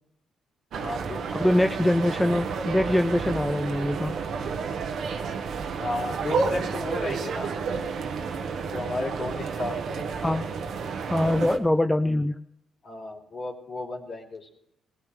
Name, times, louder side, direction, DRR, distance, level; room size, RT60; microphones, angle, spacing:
voice 1, 0.7-1.6 5.8-7.5 8.7-10.1 11.2-11.4 12.8-14.5, left 2 dB, 50° left, -2 dB, 3.4 m, -34 dB
sound 1, 0.7-11.6, right 5 dB, 70° right, 1.2 m, -31 dB
voice 2, 1.3-4.1 10.2-10.4 11.1-12.4, left 1 dB, 10° left, 7 dB, 0.6 m, -23 dB
20.0 x 17.0 x 3.3 m, 0.78 s
cardioid pair, 90°, 0 cm